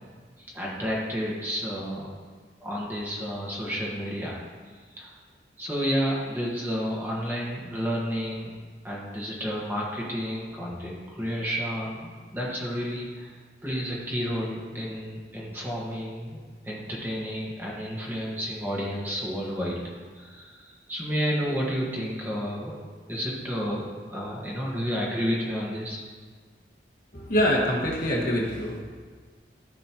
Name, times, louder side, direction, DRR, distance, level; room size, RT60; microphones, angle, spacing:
voice 1, 0.4-2.1 2.6-4.4 4.9-5.1 5.6-8.5 8.8-22.8 23.1-23.8 24.1-26.0, equal, 10° right, -5 dB, 1.6 m, -31 dB
voice 2, 27.1-28.8, equal, 55° left, -3 dB, 1.6 m, -25 dB
14.0 x 5.4 x 3.0 m, 1.5 s
head